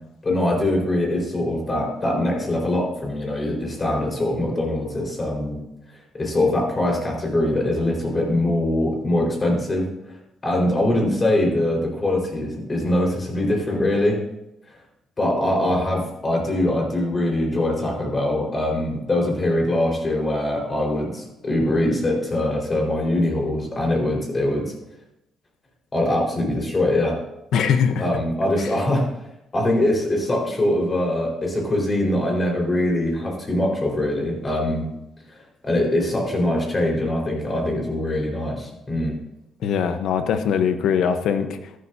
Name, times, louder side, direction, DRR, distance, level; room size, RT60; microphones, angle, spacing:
voice 1, 0.2-5.6 6.1-9.9 10.4-14.2 15.2-24.7 25.9-27.2 28.0-29.1 29.5-34.9 35.3-35.4 35.6-39.1, left 1 dB, 30° left, 0 dB, 4.8 m, -22 dB
voice 2, 27.5-28.0 28.6-28.7 39.6-41.6, left 7 dB, 75° left, 8 dB, 1.1 m, -21 dB
13.0 x 11.5 x 2.8 m, 0.88 s
cardioid pair, 90°, 0 cm